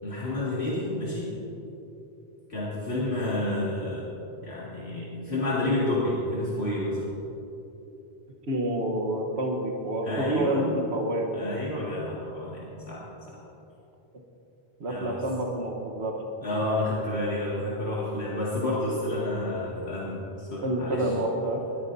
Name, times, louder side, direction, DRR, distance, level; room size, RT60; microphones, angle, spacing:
voice 1, 0.0-1.3 2.5-4.1 4.4-7.0 10.0-10.6 11.3-13.4 14.9-15.2 16.4-21.1, left 1 dB, 70° left, -8 dB, 2.5 m, -29 dB
voice 2, 8.5-10.6 10.9-11.3 14.8-16.2 20.6-21.6, right 1 dB, 75° right, 1 dB, 1.5 m, -28 dB
21.5 x 13.5 x 2.7 m, 3.0 s
omnidirectional pair, 1.1 m